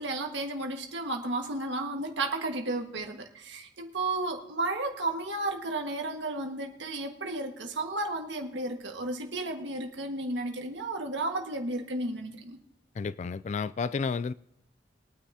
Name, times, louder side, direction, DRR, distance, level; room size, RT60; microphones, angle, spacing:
voice 1, 0.0-12.6, right 2 dB, 75° right, 1.6 m, -33 dB
voice 2, 13.0-14.3, left 5 dB, 40° left, 0.3 m, -31 dB
22.5 x 9.4 x 2.8 m
head